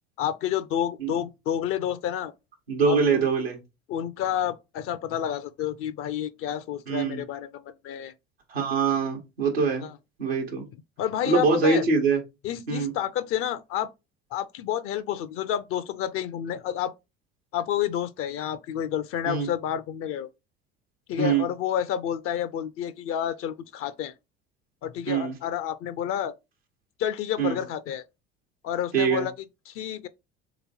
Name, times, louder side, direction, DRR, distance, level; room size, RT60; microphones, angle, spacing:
voice 1, 0.2-2.3 2.9-3.2 3.9-8.1 9.8-9.9 11.0-11.8 12.4-13.9 14.3-16.9 17.5-20.3 21.1-24.1 24.8-26.3 27.0-28.0 28.6-29.3 29.7-30.1, left 10 dB, 50° left, 0.4 m, -29 dB
voice 2, 2.7-3.6 6.9-7.2 8.5-9.9 10.2-10.6 11.3-12.2 12.7-12.9 19.3-19.5 21.2-21.5 25.1-25.4 27.4-27.6 28.9-29.3, right 5 dB, 90° right, 1.0 m, -23 dB
3.3 x 3.0 x 4.0 m
hypercardioid pair, 65°, 30 cm